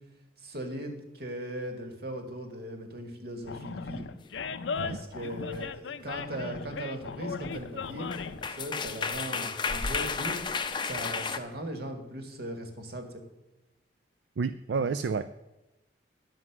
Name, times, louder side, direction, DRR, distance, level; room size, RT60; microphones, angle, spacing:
voice 1, 0.4-4.1 4.8-10.4 10.8-13.2 14.8-14.9, right 1 dB, 60° right, 5 dB, 1.8 m, -38 dB
Animal, 3.4-8.5, left 5 dB, 85° left, 0.5 m, -37 dB
sound 1, 6.1-6.3 7.8-7.9 8.1-11.4, left 5 dB, 25° left, 0.5 m, -32 dB
voice 2, 14.4-15.4, right 5 dB, 75° right, 11 dB, 0.4 m, -30 dB
11.0 x 7.7 x 5.9 m, 1.0 s
head